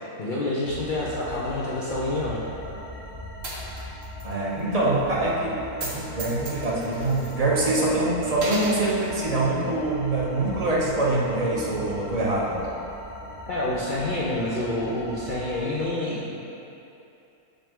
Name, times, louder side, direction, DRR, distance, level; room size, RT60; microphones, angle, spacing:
voice 1, 0.2-2.4 13.5-16.5, left 1 dB, 45° left, -7 dB, 0.7 m, -28 dB
sound 1, 0.6-15.8, left 1 dB, 80° left, 2.2 m, -40 dB
Coin (dropping), 3.4-4.3 4.6-4.7 5.7-5.9 6.2-7.8 8.3-8.8, right 2 dB, 50° right, 1.3 m, -35 dB
voice 2, 4.2-12.6, right 2 dB, 30° right, -5 dB, 1.0 m, -24 dB
6.5 x 5.3 x 3.7 m, 2.7 s
omnidirectional pair, 1.5 m